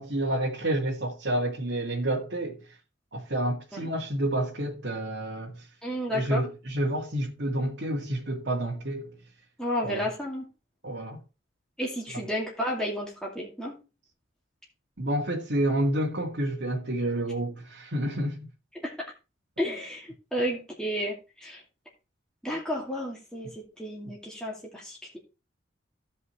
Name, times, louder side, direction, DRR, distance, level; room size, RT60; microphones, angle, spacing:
voice 1, 0.0-2.6 3.1-5.6 6.1-9.1 9.8-10.1 10.8-11.2 15.0-18.5, right 1 dB, 65° right, 2.1 m, -29 dB
voice 2, 5.8-6.4 9.6-10.5 11.8-13.8 18.7-18.9 19.6-21.6 22.4-25.2, equal, 5° left, 2.3 m, -32 dB
16.0 x 5.5 x 3.2 m
head